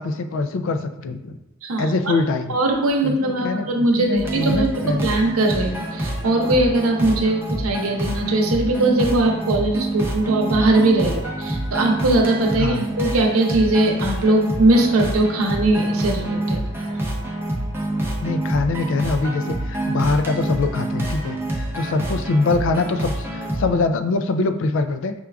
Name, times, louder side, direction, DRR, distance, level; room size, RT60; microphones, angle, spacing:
voice 1, 0.0-1.4 1.8-2.6 3.0-5.1 12.6-12.9 18.2-25.1, left 3 dB, 60° left, 8 dB, 0.3 m, -23 dB
voice 2, 1.6-2.1 2.5-16.6, right 2 dB, 75° right, 1 dB, 0.8 m, -20 dB
sound 1, 4.2-23.7, right 1 dB, 10° right, 0.5 m, -27 dB
5.8 x 2.4 x 3.4 m, 0.97 s
head